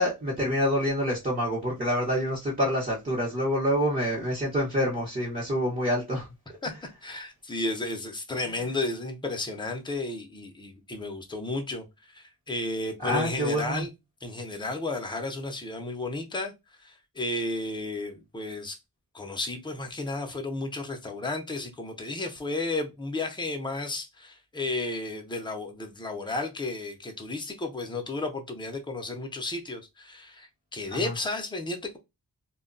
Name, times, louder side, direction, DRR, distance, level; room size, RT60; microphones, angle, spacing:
voice 1, 0.0-6.3 13.0-13.9 30.9-31.1, equal, 20° right, 0.9 m, -27 dB
voice 2, 7.0-13.9 14.2-16.5 16.8-18.8 19.1-32.0, left 2 dB, 10° left, 0.6 m, -33 dB
2.2 x 2.2 x 3.8 m
wide cardioid pair, 130°, 38 cm